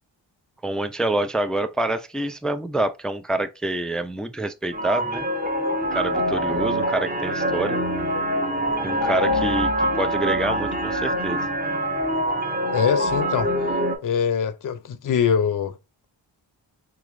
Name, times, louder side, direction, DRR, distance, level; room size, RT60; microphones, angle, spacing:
voice 1, 0.6-5.3 5.9-7.8 8.8-11.5, right 1 dB, ahead, 0.3 m, -27 dB
sound 1, 4.7-14.0, equal, 20° right, 1.1 m, -24 dB
voice 2, 12.7-13.5 14.0-15.7, left 7 dB, 45° left, 0.6 m, -23 dB
3.8 x 3.0 x 2.5 m
cardioid pair, 45°, 46 cm